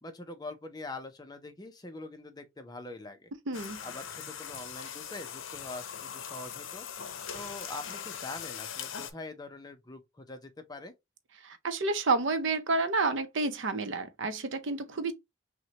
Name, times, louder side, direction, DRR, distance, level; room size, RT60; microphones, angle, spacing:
voice 1, 0.0-3.3 3.8-6.9 7.3-10.9, left 2 dB, 20° left, 0.5 m, -44 dB
sound 1, 3.5-9.1, left 8 dB, 75° left, 0.6 m, -41 dB
voice 2, 3.5-3.8 11.4-15.1, right 3 dB, 65° right, 0.6 m, -30 dB
5.9 x 2.1 x 2.8 m
head